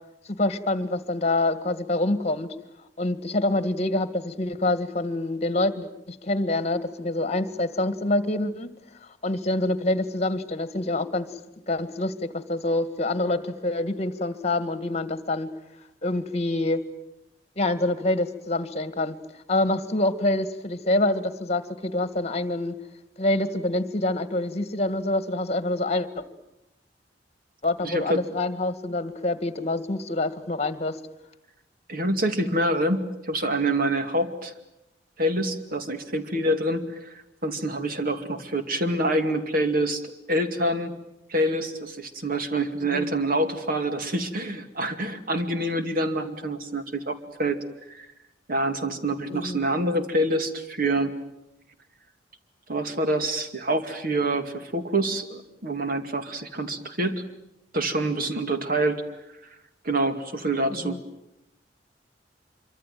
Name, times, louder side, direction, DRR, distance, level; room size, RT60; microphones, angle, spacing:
voice 1, 0.4-2.5 3.0-8.7 9.2-11.3 11.7-15.5 16.0-16.8 17.6-19.2 19.5-22.8 23.2-26.2 27.6-31.0 42.9-43.1 49.3-49.6 60.7-61.0, left 2 dB, 40° left, 12 dB, 1.8 m, -26 dB
voice 2, 27.8-28.2 31.9-34.5 35.2-40.9 41.3-47.6 47.9-48.1 48.5-51.1 52.7-57.2 57.7-59.0 59.8-61.0, right 1 dB, 55° right, 7 dB, 2.4 m, -26 dB
26.0 x 24.5 x 9.2 m, 0.86 s
head